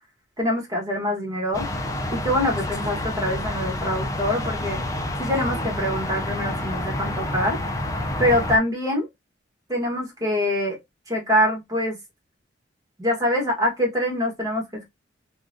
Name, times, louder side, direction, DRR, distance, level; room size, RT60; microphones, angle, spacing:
voice 1, 0.4-1.7 2.1-4.8 5.2-7.6 8.2-9.1 9.7-10.8 11.1-12.0 13.0-14.9, left 1 dB, 20° right, 1.2 m, -24 dB
sound 1, 1.5-8.6, left 1 dB, 15° left, 0.4 m, -28 dB
3.8 x 2.3 x 2.5 m
head